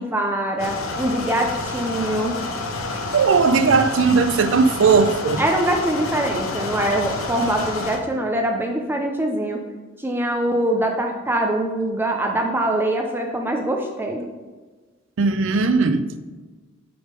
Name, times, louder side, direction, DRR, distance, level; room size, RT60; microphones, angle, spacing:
voice 1, 0.0-2.4 5.4-9.6 10.0-14.3, right 1 dB, 10° right, 0.5 m, -23 dB
sound 1, 0.6-8.0, left 2 dB, 85° left, 0.9 m, -29 dB
voice 2, 3.1-5.4 15.2-16.2, right 4 dB, 65° right, 0.5 m, -18 dB
6.9 x 3.7 x 5.1 m
head